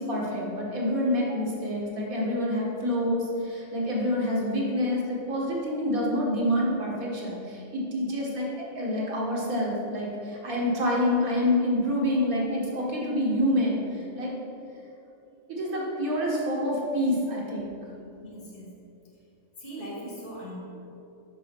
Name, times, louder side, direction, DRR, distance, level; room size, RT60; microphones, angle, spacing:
voice 1, 0.0-8.5 8.8-14.3 15.5-17.7, left 1 dB, 80° right, -3 dB, 2.0 m, -27 dB
voice 2, 18.2-18.7 19.6-20.6, equal, 40° left, -5 dB, 1.9 m, -40 dB
6.7 x 5.9 x 5.9 m, 2.8 s
omnidirectional pair, 1.5 m